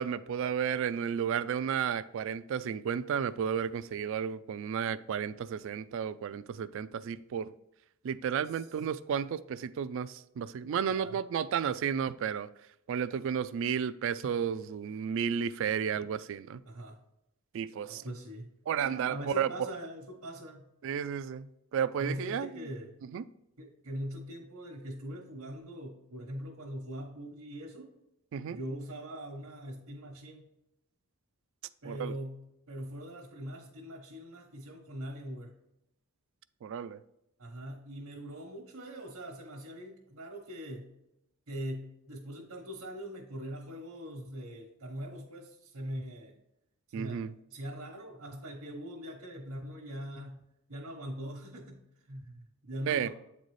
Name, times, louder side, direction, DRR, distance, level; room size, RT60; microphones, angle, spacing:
voice 1, 0.0-7.5 8.0-12.5 12.9-16.6 17.5-18.0 18.7-19.5 20.8-22.5 23.1-23.2 28.3-28.6 31.9-32.1 36.6-37.0 46.9-47.3 52.9-53.1, right 7 dB, 60° right, 0.3 m, -32 dB
voice 2, 16.7-17.0 17.9-18.5 18.8-20.7 22.0-23.0 23.6-27.9 28.5-30.4 31.8-32.4 32.7-35.5 37.4-40.9 41.5-46.3 46.9-50.4 50.7-51.8 52.1-53.1, equal, 85° right, 1.1 m, -42 dB
8.2 x 4.0 x 3.2 m
head